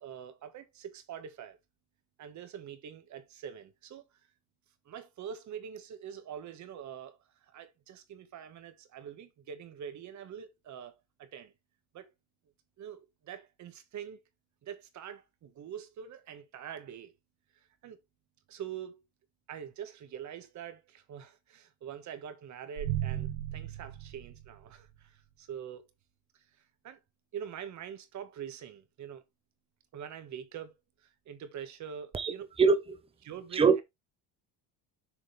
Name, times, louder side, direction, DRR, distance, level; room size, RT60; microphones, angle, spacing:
voice 1, 0.0-1.6 2.2-4.0 4.8-11.5 11.9-12.1 12.8-14.2 14.6-17.1 17.5-18.0 18.5-19.0 19.5-25.8 26.3-26.4 26.8-27.0 27.3-29.2 29.9-30.7 31.0-32.5 33.2-33.7, right 8 dB, 45° right, 1.7 m, -44 dB
sound 1, 22.8-25.0, right 12 dB, 70° right, 1.8 m, -36 dB
voice 2, 32.6-33.0 33.5-33.8, right 5 dB, 15° right, 0.9 m, -23 dB
7.4 x 6.3 x 3.4 m
cardioid pair, 165°, 41 cm